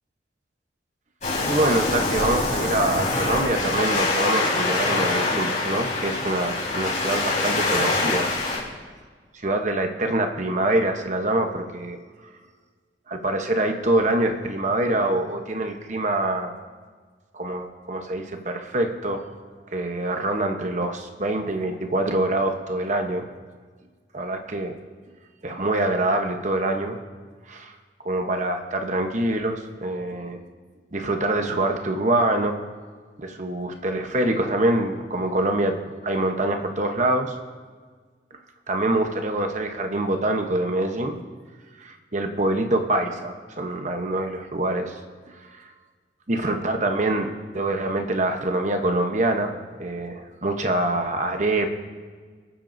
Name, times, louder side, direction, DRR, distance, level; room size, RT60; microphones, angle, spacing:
Waves surf, 1.2-8.6, left 2 dB, 40° left, 4.3 m, -24 dB
voice 1, 1.4-8.3 9.4-12.0 13.1-16.5 17.3-19.2 19.7-23.2 24.1-24.7 25.4-27.0 27.5-27.7 28.0-30.4 30.9-32.6 33.2-35.8 36.0-37.3 38.7-41.2 41.8-45.0 45.3-45.7 46.3-49.5 49.8-51.7, right 2 dB, 40° right, 5 dB, 1.0 m, -25 dB
26.5 x 8.9 x 2.7 m, 1.5 s
head